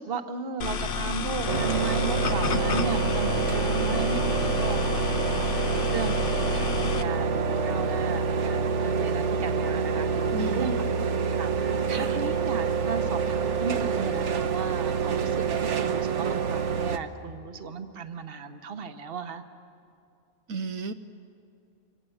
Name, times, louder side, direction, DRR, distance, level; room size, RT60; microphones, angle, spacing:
voice 1, 0.0-5.4 5.9-10.7 11.1-19.4, right 5 dB, 45° right, 8 dB, 1.3 m, -35 dB
sound 1, 0.6-7.0, left 5 dB, 50° left, 0.8 m, -31 dB
sound 2, 1.5-17.0, right 5 dB, 60° right, 1.3 m, -27 dB
voice 2, 10.3-10.8 11.9-12.2 20.5-20.9, right 3 dB, 75° right, 8 dB, 1.2 m, -33 dB
28.0 x 26.0 x 7.9 m, 2.5 s
omnidirectional pair, 1.4 m